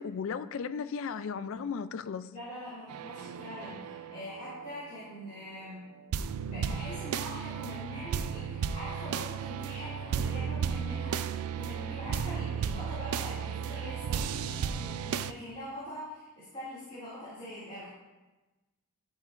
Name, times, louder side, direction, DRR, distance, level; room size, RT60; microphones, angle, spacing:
voice 1, 0.0-2.3, left 6 dB, 65° left, 13 dB, 0.3 m, -35 dB
voice 2, 2.3-5.9 6.4-17.9, left 1 dB, 30° left, -12 dB, 2.3 m, -43 dB
sound 1, 2.9-5.7 6.0-15.3, right 7 dB, 80° right, 0.3 m, -34 dB
11.0 x 5.6 x 2.5 m, 1.1 s
head